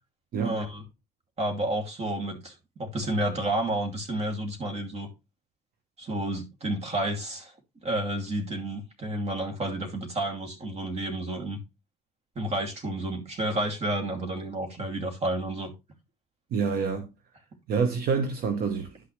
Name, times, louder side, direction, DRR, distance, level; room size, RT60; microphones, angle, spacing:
voice 1, 0.4-0.8 1.4-5.1 6.0-7.5 7.8-11.6 12.3-15.7, right 1 dB, 40° right, 2.8 m, -30 dB
voice 2, 16.5-17.1 17.7-19.0, right 5 dB, 65° right, 1.2 m, -27 dB
11.0 x 6.1 x 3.3 m
cardioid pair, 110°, 17 cm